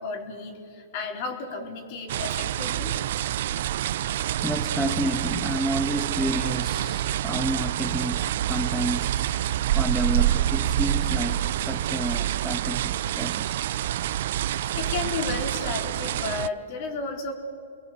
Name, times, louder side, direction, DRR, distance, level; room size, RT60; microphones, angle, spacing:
voice 1, 0.0-2.9 14.8-17.3, left 4 dB, 50° left, 3 dB, 4.7 m, -33 dB
sound 1, 2.1-16.5, right 12 dB, 60° right, 0.6 m, -27 dB
voice 2, 4.4-13.6, right 1 dB, ahead, 3 dB, 1.6 m, -30 dB
30.0 x 21.5 x 7.9 m, 2.4 s
hypercardioid pair, 125°, 0 cm